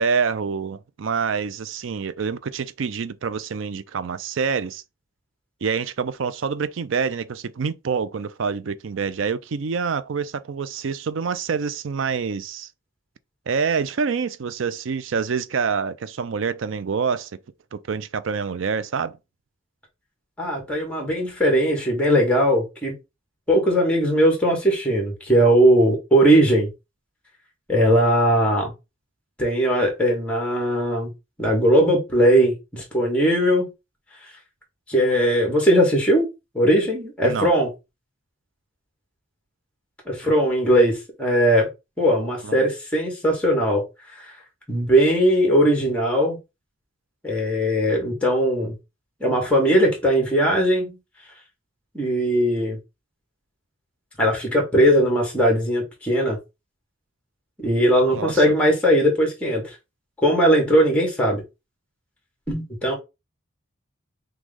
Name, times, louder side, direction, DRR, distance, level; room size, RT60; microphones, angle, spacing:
voice 1, 0.0-4.8 5.6-12.7 13.5-17.3 17.7-19.2 37.2-37.5 42.4-42.6 58.1-58.5, right 5 dB, 70° right, 0.4 m, -26 dB
voice 2, 20.4-22.9 23.5-26.7 27.7-28.7 29.4-31.1 31.4-33.7 34.9-36.3 36.5-37.7 40.1-41.7 42.0-43.8 44.2-44.3 44.7-46.4 47.2-48.7 49.2-51.0 51.9-52.8 54.2-56.4 57.6-59.6 60.2-61.4 62.5-62.9, equal, 5° left, 1.7 m, -19 dB
6.1 x 2.2 x 3.7 m
head